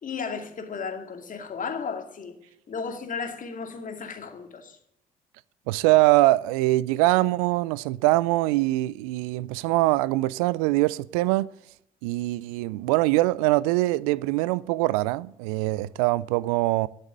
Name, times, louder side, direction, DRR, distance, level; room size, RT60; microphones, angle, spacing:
voice 1, 0.0-2.4 2.7-4.8, left 5 dB, 50° left, 2.3 m, -34 dB
voice 2, 5.7-11.5 12.0-16.9, right 19 dB, 80° right, 0.4 m, -23 dB
12.5 x 6.7 x 8.7 m
hypercardioid pair, 50°, 18 cm